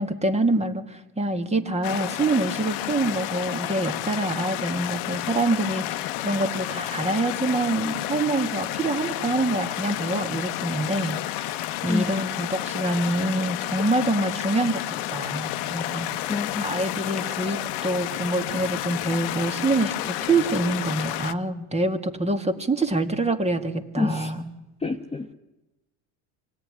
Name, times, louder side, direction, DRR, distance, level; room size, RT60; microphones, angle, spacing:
voice 1, 0.0-14.8 15.1-16.1 16.6-24.4, right 2 dB, 15° right, 7 dB, 2.1 m, -26 dB
sound 1, 1.8-21.3, left 15 dB, 80° left, 1.2 m, -31 dB
voice 2, 11.9-12.2 16.3-16.7 24.0-24.3 24.8-25.3, left 3 dB, 15° left, 3 dB, 1.1 m, -28 dB
25.5 x 17.5 x 9.8 m, 1.0 s
supercardioid pair, 120°, 44 cm